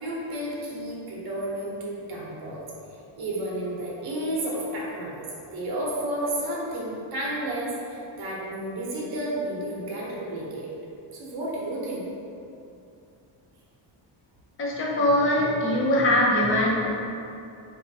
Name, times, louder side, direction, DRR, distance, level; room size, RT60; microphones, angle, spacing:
voice 1, 0.0-2.6 3.1-5.2 5.5-10.7 11.1-12.1, right 1 dB, 50° right, -4 dB, 0.8 m, -31 dB
voice 2, 14.6-16.9, left 1 dB, 30° left, -3 dB, 0.4 m, -22 dB
4.2 x 2.4 x 2.7 m, 2.6 s
wide cardioid pair, 170°, 47 cm